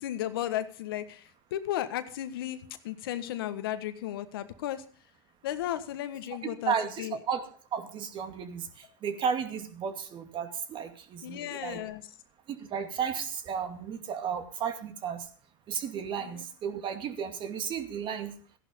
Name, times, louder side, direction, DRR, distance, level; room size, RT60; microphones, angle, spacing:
voice 1, 0.0-4.8 5.4-7.2 11.2-12.0 16.2-16.4, left 12 dB, 85° left, 10 dB, 1.5 m, -35 dB
voice 2, 6.6-11.8 12.5-15.3 15.7-18.3, right 7 dB, 45° right, 8 dB, 2.4 m, -34 dB
15.0 x 11.0 x 5.3 m, 0.42 s
supercardioid pair, 110°, 12 cm